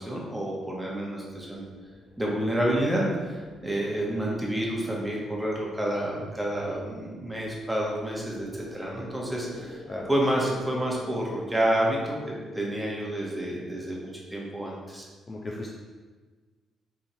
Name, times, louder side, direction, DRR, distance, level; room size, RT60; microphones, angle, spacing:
voice 1, 0.0-1.6 2.2-9.8 10.1-12.2 12.5-15.0, right 1 dB, 10° right, -3 dB, 0.9 m, -29 dB
sound 1, 1.2-15.1, left 1 dB, 80° left, 1.3 m, -47 dB
voice 2, 15.3-15.7, left 2 dB, 30° left, -2 dB, 0.4 m, -36 dB
4.6 x 2.7 x 2.7 m, 1.4 s
cardioid pair, 90°, 0 cm